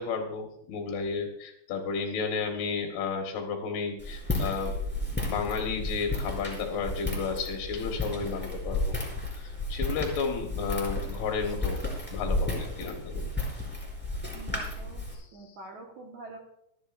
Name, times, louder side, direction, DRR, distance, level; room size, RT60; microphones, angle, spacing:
voice 1, 0.0-4.7 5.1-9.0 9.3-11.8 12.1-13.3 15.2-15.3, left 5 dB, 65° left, 2 dB, 2.9 m, -32 dB
Walk footsteps, 4.0-15.1, left 2 dB, ahead, 3.0 m, -33 dB
voice 2, 14.3-16.4, right 2 dB, 80° right, 1 dB, 1.7 m, -46 dB
25.5 x 10.5 x 2.6 m, 0.74 s
omnidirectional pair, 5.8 m